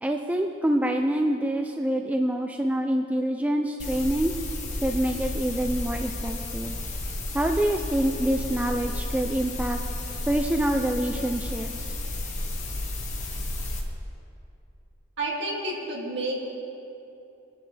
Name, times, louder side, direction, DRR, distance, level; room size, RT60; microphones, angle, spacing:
voice 1, 0.0-4.3 4.8-6.8 7.3-9.8 10.3-12.0, right 1 dB, 5° right, 3 dB, 0.4 m, -26 dB
sound 1, 3.8-13.8, left 1 dB, 35° left, 1.4 m, -32 dB
voice 2, 15.2-16.4, right 1 dB, 55° right, -4 dB, 2.5 m, -30 dB
22.0 x 10.0 x 3.4 m, 2.7 s
head